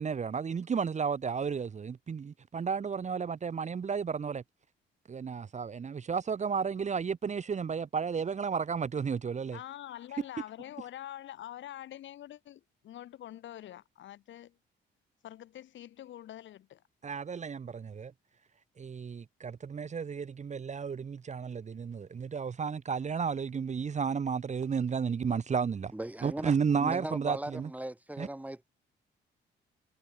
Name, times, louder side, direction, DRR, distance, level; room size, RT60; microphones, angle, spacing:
voice 1, 0.0-4.4 5.1-9.6 17.0-18.1 18.8-25.9 26.2-27.7 28.2-28.3, right 6 dB, 35° right, 1.0 m, -33 dB
voice 2, 9.5-14.5 15.2-16.8, left 12 dB, 70° left, 1.4 m, -45 dB
voice 3, 25.9-26.5 26.8-28.7, right 1 dB, 5° right, 2.8 m, -38 dB
cardioid pair, 90°, 20 cm